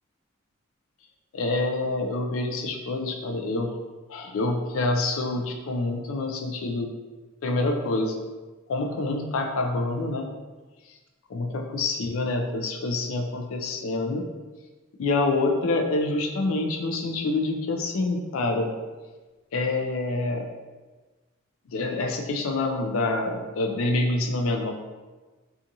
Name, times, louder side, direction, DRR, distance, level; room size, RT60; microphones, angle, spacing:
voice 1, 1.3-3.7 4.1-6.9 7.4-8.2 8.7-10.3 11.3-14.2 15.0-18.7 19.5-20.5 21.7-24.7, left 2 dB, 75° left, 3 dB, 0.4 m, -26 dB
2.5 x 2.4 x 2.7 m, 1.3 s
head